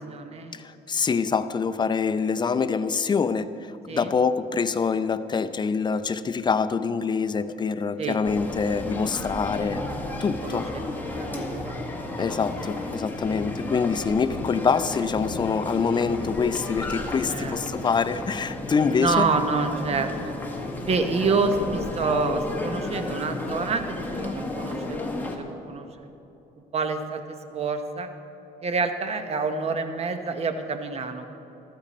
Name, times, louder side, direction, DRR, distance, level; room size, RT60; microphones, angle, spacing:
voice 1, 0.0-0.6 3.9-4.1 8.0-8.2 10.4-11.8 17.3-17.9 19.0-20.3 20.8-26.1 26.7-28.1 28.6-31.3, right 4 dB, 40° right, 7 dB, 1.1 m, -28 dB
voice 2, 0.5-9.8 10.2-10.7 12.2-19.3, left 5 dB, 25° left, 12 dB, 0.5 m, -25 dB
sound 1, 8.2-25.4, left 2 dB, 10° left, 1.7 m, -33 dB
14.5 x 13.5 x 4.2 m, 2.9 s
cardioid pair, 110°, 17 cm